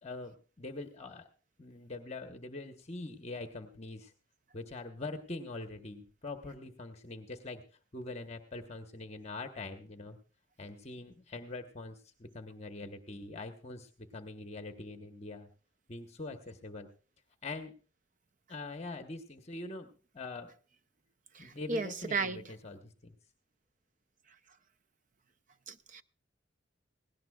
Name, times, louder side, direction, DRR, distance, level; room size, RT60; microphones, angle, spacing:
voice 1, 0.0-1.3 1.6-4.1 4.5-7.6 7.9-10.2 10.6-15.5 15.9-16.9 17.4-17.7 18.5-20.5 21.4-23.1, left 2 dB, 35° left, 1.0 m, -43 dB
voice 2, 21.3-22.4 25.7-26.0, right 4 dB, 40° right, 0.5 m, -35 dB
17.5 x 17.5 x 2.3 m
head